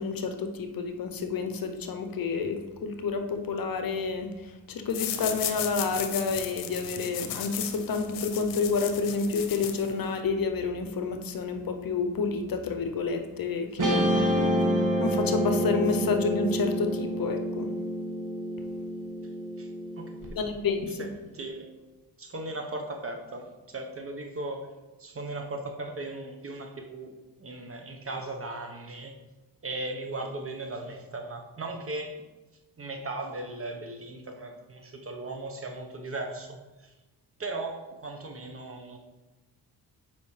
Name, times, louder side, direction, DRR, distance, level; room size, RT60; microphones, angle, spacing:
voice 1, 0.0-4.3 4.7-14.1 15.0-17.7 20.4-21.1, left 4 dB, 55° left, 6 dB, 0.8 m, -29 dB
sound 1, 4.9-10.2, left 10 dB, 85° left, 0.7 m, -35 dB
Guitar, 13.8-20.3, equal, 50° right, 1.5 m, -28 dB
voice 2, 20.0-20.4 20.9-21.8 22.2-24.7 25.0-29.2 29.6-32.2 32.8-36.9 37.4-39.0, right 2 dB, 35° right, 3 dB, 1.1 m, -37 dB
8.1 x 5.0 x 3.3 m, 1.2 s
cardioid pair, 65°, 41 cm